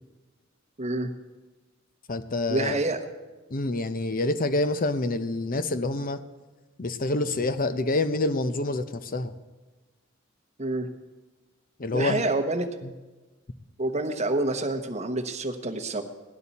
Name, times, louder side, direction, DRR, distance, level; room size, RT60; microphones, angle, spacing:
voice 1, 0.8-1.1 2.5-3.0 10.6-10.9 11.9-12.7 13.8-16.0, right 2 dB, 35° right, 7 dB, 1.1 m, -27 dB
voice 2, 2.1-2.8 3.5-6.2 6.8-9.3 11.8-12.2 12.8-12.9, left 2 dB, 45° left, 10 dB, 0.8 m, -27 dB
18.0 x 11.5 x 4.2 m, 1.2 s
head